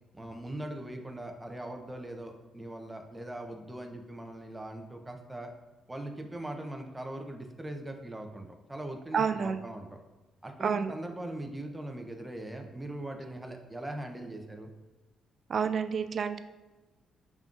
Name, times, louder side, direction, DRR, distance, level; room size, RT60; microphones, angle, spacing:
voice 1, 0.1-5.5 5.9-10.0 10.4-14.7, right 1 dB, 10° right, 3 dB, 0.6 m, -40 dB
voice 2, 9.1-9.7 10.6-10.9 15.5-16.4, right 6 dB, 50° right, 10 dB, 0.3 m, -29 dB
5.4 x 3.6 x 2.5 m, 1.2 s
cardioid pair, 90°, 0 cm